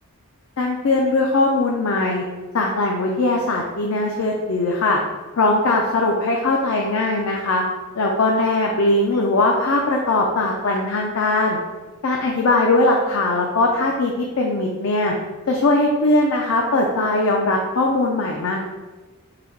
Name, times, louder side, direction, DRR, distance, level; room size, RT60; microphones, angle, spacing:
voice 1, 0.6-2.2 2.5-5.0 5.4-7.6 7.9-11.6 12.0-15.1 15.5-18.6, left 2 dB, 75° left, 0 dB, 0.5 m, -20 dB
4.0 x 2.8 x 4.5 m, 1.3 s
head